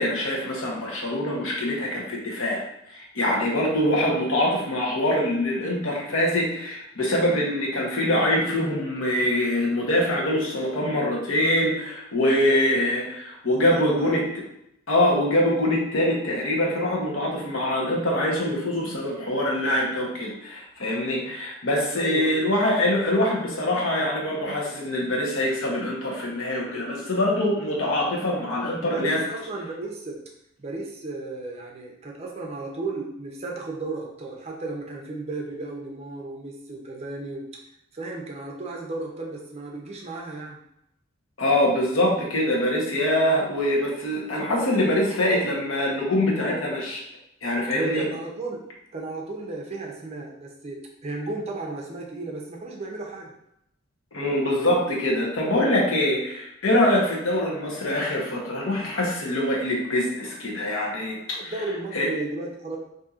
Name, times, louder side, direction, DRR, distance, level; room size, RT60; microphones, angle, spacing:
voice 1, 0.0-2.6 2.9-14.3 14.9-29.2 41.4-47.0 47.4-48.1 54.1-61.5 61.9-62.1, left 1 dB, 70° left, -2 dB, 0.9 m, -24 dB
voice 2, 12.4-12.8 13.6-14.1 22.0-22.5 28.8-30.2 30.6-37.4 37.9-40.6 47.7-48.6 48.9-53.3 61.4-62.8, right 2 dB, 30° right, 0 dB, 0.5 m, -34 dB
4.1 x 2.7 x 2.4 m, 0.80 s
head